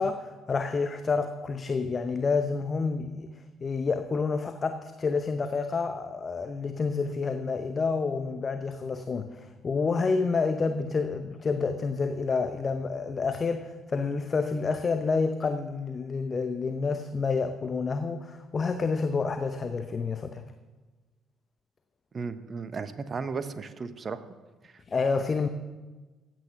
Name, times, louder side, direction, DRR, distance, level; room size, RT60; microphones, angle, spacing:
voice 1, 0.0-3.3 3.6-20.4 24.9-25.5, left 4 dB, 35° left, 8 dB, 0.9 m, -29 dB
voice 2, 22.1-24.2 24.6-24.7, right 5 dB, 40° right, 12 dB, 1.1 m, -35 dB
15.5 x 9.2 x 5.9 m, 1.3 s
figure-of-eight pair, 50°, 0 cm